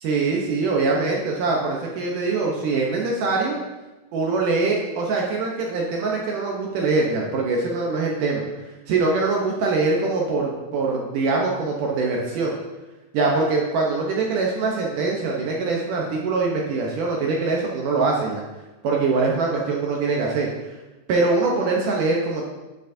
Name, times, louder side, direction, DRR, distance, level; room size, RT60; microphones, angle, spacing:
voice 1, 0.0-3.6 4.1-8.4 8.9-12.6 13.1-18.4 18.8-20.5 21.1-22.5, right 3 dB, 75° right, -1 dB, 1.9 m, -23 dB
10.0 x 9.1 x 2.7 m, 1.1 s
omnidirectional pair, 4.9 m